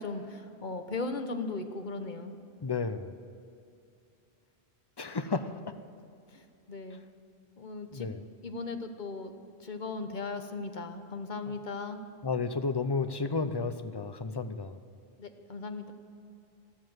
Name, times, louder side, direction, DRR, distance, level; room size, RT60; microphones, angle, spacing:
voice 1, 0.0-2.4 6.3-7.0 7.6-8.1 8.4-9.3 9.6-12.0 15.2-15.9, left 3 dB, 50° left, 7 dB, 1.2 m, -37 dB
voice 2, 2.6-3.2 5.0-5.7 7.9-8.2 12.2-14.8, left 4 dB, 30° left, 10 dB, 0.6 m, -32 dB
14.0 x 13.0 x 7.9 m, 2.6 s
omnidirectional pair, 1.1 m